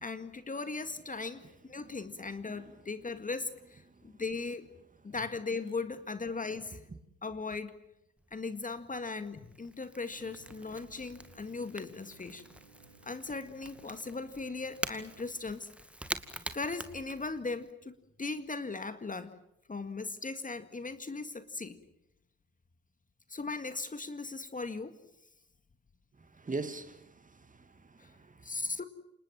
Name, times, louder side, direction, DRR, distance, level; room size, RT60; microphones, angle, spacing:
voice 1, 0.0-1.4 1.7-4.7 5.0-6.8 7.2-7.7 8.3-12.4 13.0-15.7 16.5-17.9 18.2-19.3 19.7-21.8 23.3-24.9 28.0-28.1 28.4-28.8, left 3 dB, 20° left, 2.0 m, -38 dB
voice 2, 1.8-2.7 26.2-28.8, right 3 dB, 20° right, 2.3 m, -43 dB
Crackle / Crack, 8.2-17.7, right 1 dB, 5° right, 2.2 m, -45 dB
sound 1, 10.1-15.2, right 3 dB, 85° right, 3.9 m, -59 dB
29.0 x 27.0 x 7.6 m
figure-of-eight pair, 45°, 36 cm